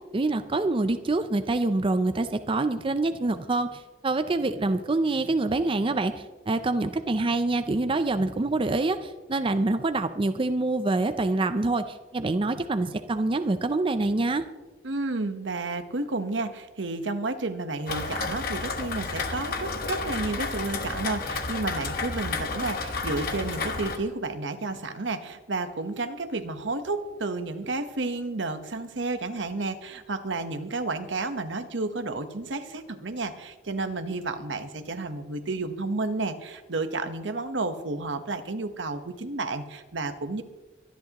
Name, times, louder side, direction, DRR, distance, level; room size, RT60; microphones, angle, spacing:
voice 1, 0.0-14.4, right 2 dB, 30° right, 9 dB, 0.5 m, -26 dB
voice 2, 14.8-40.4, right 3 dB, 80° right, 9 dB, 1.1 m, -31 dB
Rain, 17.9-24.0, left 3 dB, 55° left, 1.2 m, -31 dB
24.0 x 10.5 x 3.0 m, 1.2 s
head